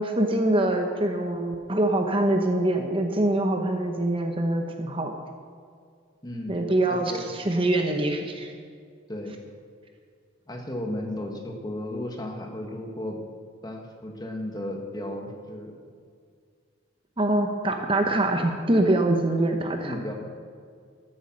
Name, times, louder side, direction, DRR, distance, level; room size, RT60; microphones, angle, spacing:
voice 1, 0.0-5.1 6.5-8.5 17.2-20.0, right 1 dB, 25° right, 4 dB, 0.9 m, -24 dB
voice 2, 6.2-7.3 9.1-9.4 10.5-13.2 13.6-15.7 19.8-20.1, left 1 dB, 20° left, 2 dB, 1.6 m, -34 dB
14.0 x 8.6 x 6.3 m, 2.2 s
head